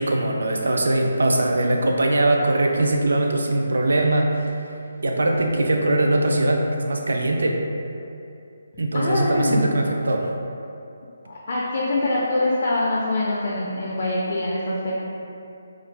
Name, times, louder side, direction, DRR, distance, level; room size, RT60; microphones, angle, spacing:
voice 1, 0.0-4.5 5.0-7.6 8.8-10.3, right 1 dB, 80° right, 2 dB, 0.3 m, -21 dB
voice 2, 8.9-9.7 11.3-14.9, left 2 dB, 40° left, -5 dB, 0.3 m, -24 dB
2.4 x 2.1 x 3.2 m, 2.6 s
hypercardioid pair, 175°, 0 cm